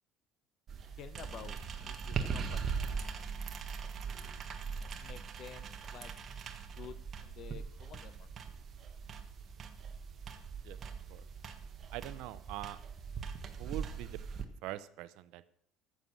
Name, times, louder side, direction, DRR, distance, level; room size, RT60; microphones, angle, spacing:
sound 1, 0.7-14.4, right 6 dB, 35° right, 1.4 m, -41 dB
voice 1, 1.0-3.7 5.0-6.1 6.8-8.3, left 8 dB, 45° left, 13 dB, 1.1 m, -51 dB
voice 2, 11.9-12.8 13.6-14.2 14.6-15.5, right 15 dB, 70° right, 14 dB, 0.8 m, -43 dB
15.0 x 7.6 x 6.4 m, 0.68 s
cardioid pair, 145°, 0 cm